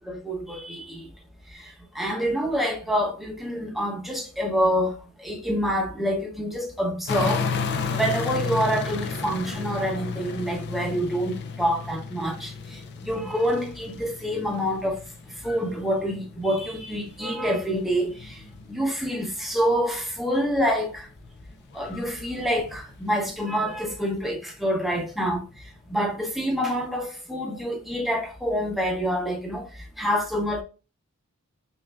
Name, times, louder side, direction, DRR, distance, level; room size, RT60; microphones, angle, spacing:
voice 1, 0.1-1.1 1.5-7.4 8.0-15.0 15.4-21.1 21.7-25.4 25.9-30.6, equal, ahead, 0.7 m, -27 dB
sound 1, 7.1-19.0 19.4-24.3 24.8-24.9, left 5 dB, 50° left, 0.4 m, -33 dB
5.4 x 2.5 x 2.4 m
head